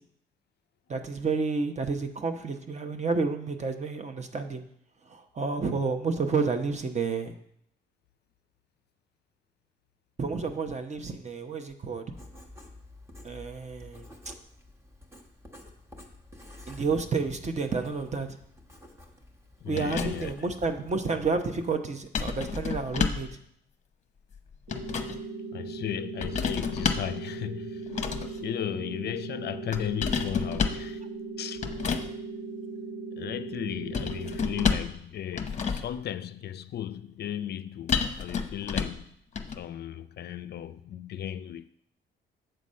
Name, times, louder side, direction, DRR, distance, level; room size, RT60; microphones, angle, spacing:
voice 1, 0.9-4.6 5.1-7.3 10.2-12.0 13.2-14.3 16.7-18.3 19.7-23.3, right 4 dB, 35° right, 0.9 m, -30 dB
Writing, 12.1-21.7, left 1 dB, 15° right, 1.2 m, -50 dB
voice 2, 19.6-20.5 25.5-28.0 28.4-31.0 31.4-31.7 33.1-39.1 39.6-41.7, left 10 dB, 55° left, 0.4 m, -36 dB
sound 1, 19.8-20.4 22.1-23.3 24.3-25.2 26.2-27.2 27.9-28.4 29.7-30.9 31.6-32.1 33.9-35.0 35.3-36.0 37.9-39.0 39.4-39.6, left 5 dB, 35° left, 0.8 m, -30 dB
sound 2, 24.7-34.7, right 4 dB, 70° right, 2.7 m, -38 dB
7.8 x 4.1 x 6.3 m
cardioid pair, 90°, 20 cm